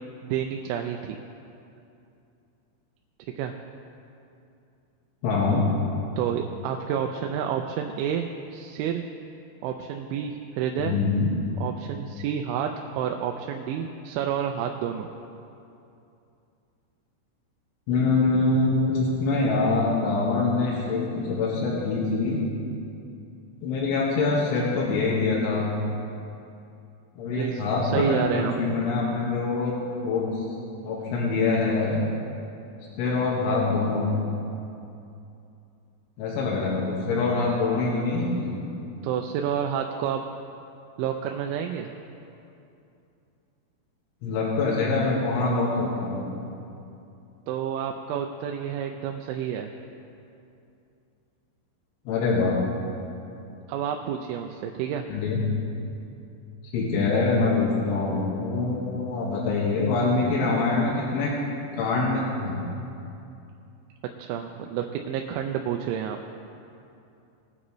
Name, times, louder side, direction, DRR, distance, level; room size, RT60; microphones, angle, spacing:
voice 1, 0.2-1.2 3.3-3.5 6.2-9.0 9.6-11.0 11.6-15.1 27.3-28.5 39.0-40.2 41.0-41.9 47.5-49.7 53.7-55.0 64.2-66.2, right 9 dB, 90° right, 3 dB, 3.0 m, -29 dB
voice 2, 5.2-5.7 10.8-11.3 17.9-22.4 23.6-25.7 27.2-29.7 30.0-30.5 30.8-32.0 33.0-34.2 36.2-38.6 44.2-46.3 52.1-52.5 55.1-55.4 56.6-61.3 61.7-62.6, left 3 dB, 90° left, -5 dB, 3.9 m, -24 dB
20.0 x 9.9 x 3.1 m, 2.7 s
omnidirectional pair, 5.4 m